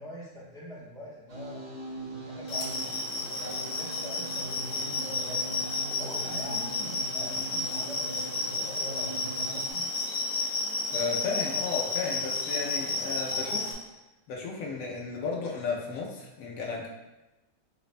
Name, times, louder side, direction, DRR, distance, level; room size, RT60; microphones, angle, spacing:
voice 1, 0.0-1.7 2.3-3.1 3.4-5.7 6.0-9.9, equal, 5° left, -10 dB, 0.4 m, -45 dB
sound 1, 1.3-9.7, right 1 dB, 55° right, 0.8 m, -41 dB
sound 2, 2.5-13.7, left 3 dB, 55° left, 0.5 m, -32 dB
voice 2, 10.9-13.8 14.3-16.9, left 4 dB, 85° left, -1 dB, 1.0 m, -34 dB
4.8 x 2.1 x 2.5 m, 1.0 s
omnidirectional pair, 1.4 m